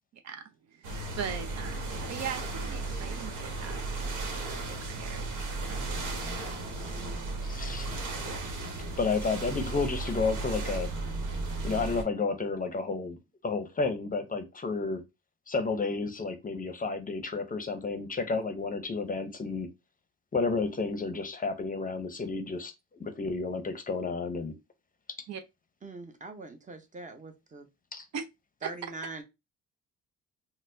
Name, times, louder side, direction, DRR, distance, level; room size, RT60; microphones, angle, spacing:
voice 1, 0.2-0.9 1.2-3.9 4.3-5.3 5.6-5.9 7.6-7.7 8.3-8.5 25.3-25.4 28.1-28.2 28.6-28.9, right 7 dB, 60° right, 0.6 m, -40 dB
sound 1, 0.8-12.0, right 2 dB, 80° right, 1.1 m, -35 dB
voice 2, 7.4-7.9 9.0-10.9 11.6-13.2 13.4-15.0 15.5-19.7 20.3-22.7 23.0-24.5 27.9-28.1, left 4 dB, 30° left, 0.6 m, -31 dB
voice 3, 25.8-27.7 28.6-29.2, right 3 dB, 25° right, 0.7 m, -42 dB
4.1 x 2.1 x 2.6 m
cardioid pair, 90°, 30 cm